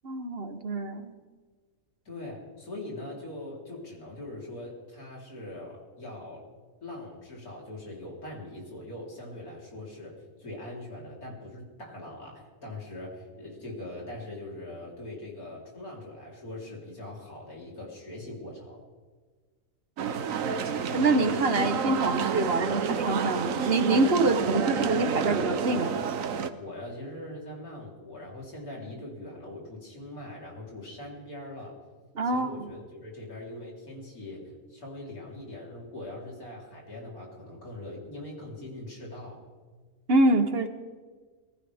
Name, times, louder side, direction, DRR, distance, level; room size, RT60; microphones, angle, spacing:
voice 1, 0.0-1.1 20.9-26.0 32.1-32.7 40.1-40.7, right 2 dB, 45° right, 8 dB, 1.2 m, -25 dB
voice 2, 2.1-6.4 6.8-18.8 26.6-31.8 32.2-39.4, left 1 dB, 90° left, -3 dB, 4.4 m, -42 dB
sound 1, 20.0-26.5, right 6 dB, 70° right, 1.2 m, -29 dB
22.5 x 15.5 x 3.5 m, 1.4 s
omnidirectional pair, 1.5 m